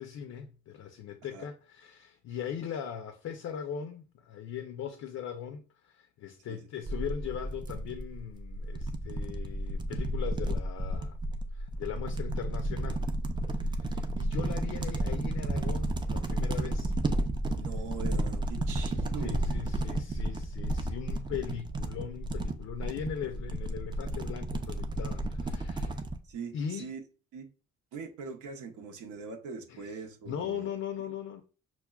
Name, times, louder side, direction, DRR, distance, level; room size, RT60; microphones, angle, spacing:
voice 1, 0.0-11.2 11.5-13.1 13.6-16.9 19.2-26.0 26.5-26.9 29.7-30.0 30.3-31.4, left 8 dB, 55° left, 0.5 m, -39 dB
sound 1, 6.9-26.2, right 1 dB, 15° right, 0.4 m, -32 dB
voice 2, 17.5-19.7 26.3-27.0 27.3-27.5 27.9-30.7 31.0-31.1, right 5 dB, 90° right, 0.7 m, -42 dB
5.8 x 2.1 x 2.2 m
cardioid pair, 90°, 30 cm